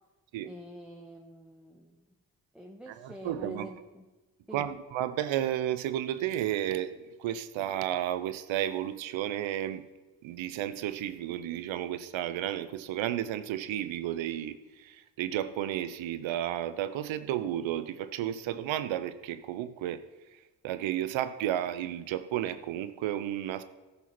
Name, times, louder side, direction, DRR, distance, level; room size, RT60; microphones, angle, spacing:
voice 1, 0.4-2.0 2.5-4.1 4.5-4.7, right 1 dB, ahead, 1 dB, 1.4 m, -45 dB
voice 2, 2.9-3.7 4.5-6.9 7.2-9.8 10.2-20.0 20.6-23.6, right 11 dB, 75° right, 12 dB, 0.8 m, -32 dB
14.0 x 5.7 x 6.0 m, 1.2 s
hypercardioid pair, 45°, 47 cm